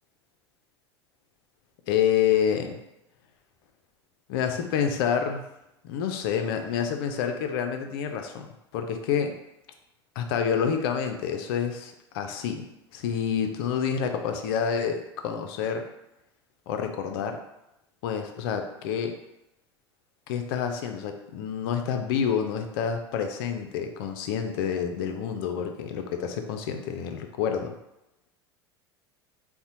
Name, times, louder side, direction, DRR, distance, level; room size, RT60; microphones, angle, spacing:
voice 1, 1.9-2.8 4.3-5.4 5.8-8.5 8.7-9.3 10.2-12.7 12.9-15.9 16.7-17.4 18.0-19.2 20.3-27.7, left 7 dB, 60° left, 5 dB, 0.4 m, -28 dB
4.1 x 2.1 x 2.7 m, 0.87 s
figure-of-eight pair, 75°, 14 cm